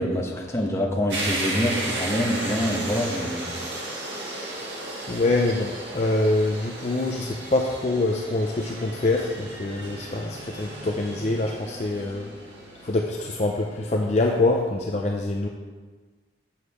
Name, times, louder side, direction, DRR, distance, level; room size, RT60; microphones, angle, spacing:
voice 1, 0.0-3.5, equal, 15° left, -1 dB, 1.0 m, -26 dB
sound 1, 1.1-13.8, right 1 dB, 80° right, 1.6 m, -34 dB
voice 2, 5.1-12.3 12.8-15.5, left 2 dB, 40° left, 1 dB, 0.5 m, -25 dB
7.2 x 6.6 x 4.7 m, 1.4 s
head